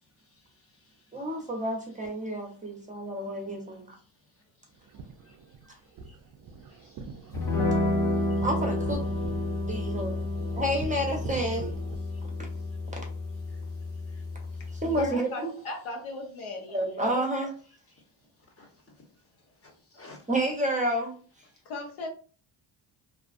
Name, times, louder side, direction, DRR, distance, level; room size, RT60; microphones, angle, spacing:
voice 1, 0.3-1.0 5.2-5.4 5.6-5.7 6.1-6.2 6.7-7.3 8.2-8.4 12.1-12.2 14.1-14.2 14.7-14.8 18.6-18.7 19.6-20.2, left 2 dB, 30° left, 1.0 m, -56 dB
voice 2, 1.1-3.9 8.4-9.0 9.7-10.3 10.5-11.8 14.8-15.5 16.7-17.5 20.3-21.1, right 1 dB, 15° right, 0.7 m, -29 dB
sound 1, 4.7-12.0, right 5 dB, 45° right, 0.4 m, -44 dB
sound 2, 7.3-15.1, left 2 dB, 45° left, 1.2 m, -30 dB
voice 3, 14.8-17.0 21.6-22.1, left 2 dB, 75° left, 0.9 m, -37 dB
2.4 x 2.3 x 2.4 m
supercardioid pair, 70°, 47 cm